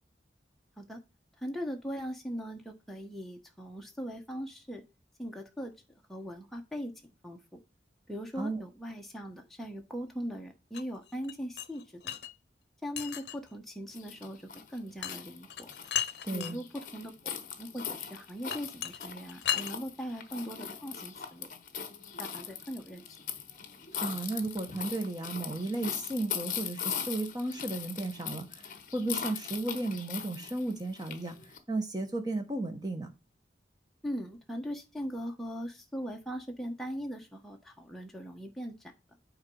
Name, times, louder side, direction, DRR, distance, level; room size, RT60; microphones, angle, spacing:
voice 1, 1.4-4.8 5.2-5.7 6.1-6.9 7.2-7.4 8.1-12.2 12.8-15.7 16.3-17.1 17.6-21.5 22.2-23.1 34.0-38.9, equal, ahead, 1.2 m, -40 dB
sound 1, 10.7-12.3 13.0-13.5 15.0-15.2 15.5-16.5 18.5-19.7, left 10 dB, 75° left, 0.7 m, -35 dB
sound 2, 13.9-31.6, left 8 dB, 45° left, 1.1 m, -40 dB
voice 2, 16.2-16.6 24.0-31.3 31.7-33.1, right 2 dB, 20° right, 1.3 m, -34 dB
8.8 x 3.8 x 5.5 m
head